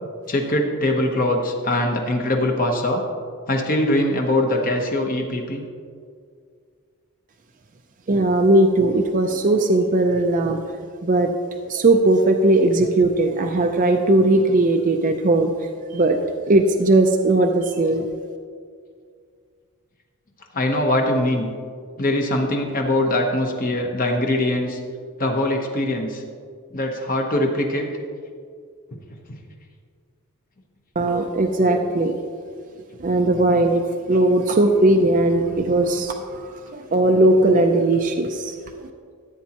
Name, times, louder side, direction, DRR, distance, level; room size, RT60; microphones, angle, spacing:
voice 1, 0.3-3.0 3.5-5.6 20.5-21.5 22.0-24.8 25.2-26.2 26.7-27.9 29.3-29.4, left 1 dB, 40° left, 2 dB, 0.9 m, -22 dB
voice 2, 8.1-10.6 11.0-11.3 11.7-15.5 15.9-16.2 16.5-18.0 31.0-32.1 33.0-33.8 34.1-38.6, right 2 dB, 35° right, 4 dB, 0.5 m, -18 dB
14.5 x 8.3 x 2.9 m, 2.1 s
head